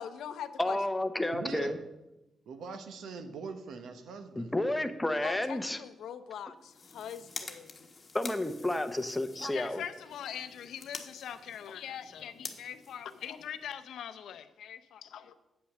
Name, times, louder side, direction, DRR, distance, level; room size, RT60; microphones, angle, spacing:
voice 1, 0.0-0.8 5.2-7.8 9.3-15.3, left 9 dB, 80° left, 0.7 m, -42 dB
voice 2, 0.6-1.8 4.4-5.8 8.1-9.8, left 1 dB, 10° left, 0.7 m, -31 dB
voice 3, 1.3-1.8 2.5-4.5, right 5 dB, 80° right, 1.0 m, -42 dB
sound 1, 6.6-13.9, left 4 dB, 35° left, 1.2 m, -48 dB
8.6 x 5.7 x 6.5 m
cardioid pair, 105°, 0 cm